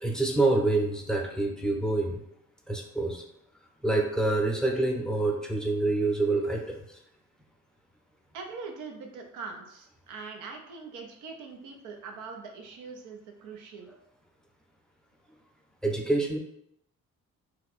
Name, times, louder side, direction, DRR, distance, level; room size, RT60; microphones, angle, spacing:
voice 1, 0.0-2.2 2.7-3.2 3.8-6.8 15.8-16.4, right 2 dB, ahead, 0 dB, 0.5 m, -26 dB
voice 2, 8.3-13.9, right 4 dB, 85° right, 3 dB, 0.6 m, -42 dB
2.8 x 2.2 x 4.0 m, 0.76 s
cardioid pair, 90°, 30 cm